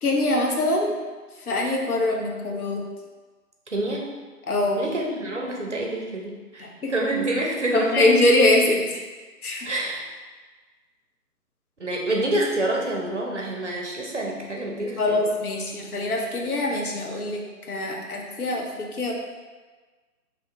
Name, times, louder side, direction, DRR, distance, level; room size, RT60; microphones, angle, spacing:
voice 1, 0.0-0.9 1.5-2.8 4.5-4.8 6.6-6.9 7.7-9.0 9.4-9.7 15.0-19.1, left 2 dB, 65° left, 0 dB, 0.7 m, -23 dB
voice 2, 3.7-4.1 4.8-8.2 9.6-10.0 11.8-15.3, right 1 dB, 50° right, -1 dB, 0.5 m, -27 dB
2.7 x 2.7 x 3.2 m, 1.4 s
figure-of-eight pair, 145°, 47 cm